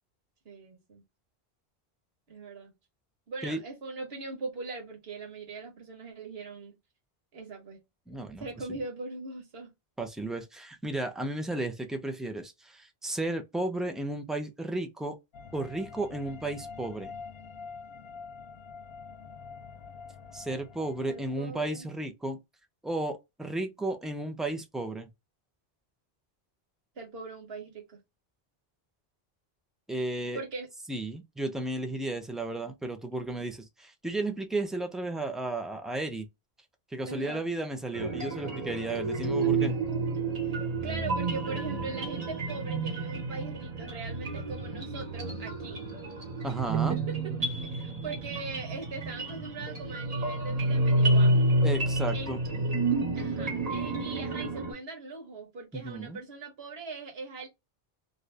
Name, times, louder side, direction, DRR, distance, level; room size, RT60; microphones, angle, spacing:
voice 1, 0.4-1.0 2.3-2.7 3.3-6.8 7.3-7.8 8.4-9.7 21.0-21.9 26.9-28.0 30.3-30.7 37.1-37.4 39.3-39.8 40.4-45.8 46.6-47.2 47.7-51.5 52.1-52.3 53.1-57.5, right 3 dB, 75° right, 1.4 m, -40 dB
voice 2, 8.1-8.8 10.0-15.2 15.5-17.1 20.3-22.4 22.8-25.1 29.9-30.4 30.9-36.3 36.9-39.7 46.4-47.0 51.6-52.4 55.7-56.2, right 2 dB, ahead, 0.3 m, -33 dB
sound 1, 15.3-21.8, left 5 dB, 70° left, 0.8 m, -46 dB
sound 2, 37.9-54.7, right 2 dB, 40° right, 1.1 m, -29 dB
2.7 x 2.5 x 3.2 m
omnidirectional pair, 1.0 m